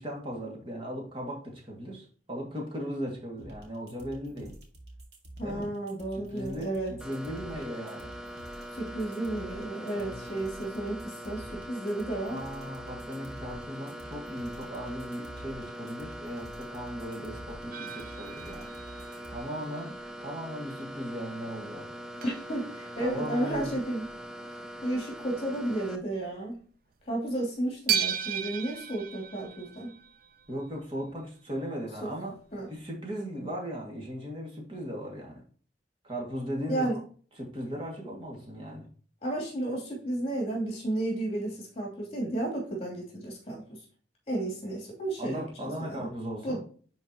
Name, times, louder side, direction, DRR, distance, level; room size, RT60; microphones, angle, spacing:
voice 1, 0.0-4.6 5.4-5.7 6.1-8.1 9.9-10.3 12.2-18.7 19.3-21.9 23.0-23.7 30.5-32.3 32.7-35.4 36.0-36.9 37.4-38.9 45.2-46.6, equal, 30° right, -1 dB, 2.1 m, -37 dB
sound 1, 3.4-19.4, right 1 dB, 70° right, 2.0 m, -48 dB
voice 2, 5.4-7.0 8.8-12.4 22.2-24.0 24.8-26.6 27.1-29.9 32.0-32.1 32.5-32.7 36.7-37.0 39.2-43.8 44.3-46.1 46.4-46.6, right 1 dB, 35° left, -2 dB, 2.9 m, -32 dB
sound 2, 7.0-26.0, equal, 5° right, 0.6 m, -42 dB
sound 3, 17.7-20.2 20.7-20.8 21.3-21.4 21.7-21.8 22.2-24.3 24.7-25.0 25.2-25.3 25.9-26.1 26.5-26.6 27.9-30.8 32.0-32.1 32.5-32.6, right 9 dB, 55° right, 0.5 m, -36 dB
10.0 x 4.5 x 2.9 m, 0.43 s
head